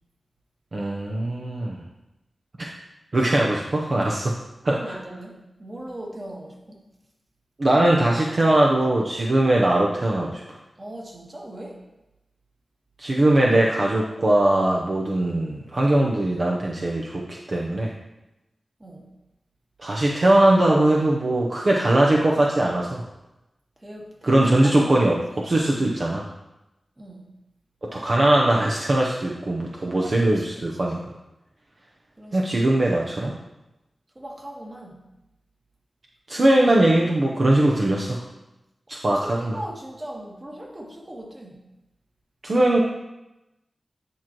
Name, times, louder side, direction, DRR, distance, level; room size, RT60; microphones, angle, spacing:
voice 1, 0.7-1.8 3.1-4.4 4.6-4.7 7.6-10.4 13.0-17.2 17.5-17.9 19.8-23.0 24.2-26.2 27.8-31.0 32.3-33.3 36.3-38.2 38.9-39.6 42.4-42.8, right 1 dB, 55° right, -2 dB, 0.7 m, -20 dB
voice 2, 4.6-6.8 10.8-11.8 18.8-19.1 23.8-25.7 27.0-27.2 29.8-31.0 32.2-32.5 34.1-35.0 39.0-41.6, right 1 dB, 30° right, -1 dB, 1.5 m, -39 dB
10.0 x 4.5 x 3.0 m, 0.97 s
wide cardioid pair, 65°, 0 cm